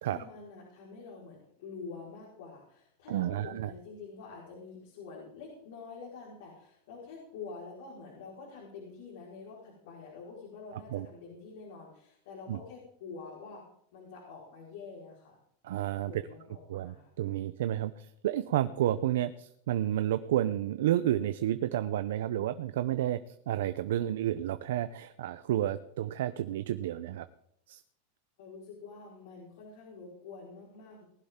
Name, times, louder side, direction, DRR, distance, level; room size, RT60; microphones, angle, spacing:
voice 1, 0.0-13.6 13.9-15.4 16.1-17.1 28.4-31.0, left 4 dB, 70° left, -4 dB, 4.6 m, -47 dB
voice 2, 3.1-3.7 10.9-11.1 12.5-12.6 15.6-16.1 16.7-27.2 27.7-27.8, right 12 dB, 75° right, 11 dB, 0.6 m, -31 dB
19.0 x 11.5 x 3.7 m, 0.70 s
supercardioid pair, 145°, 0 cm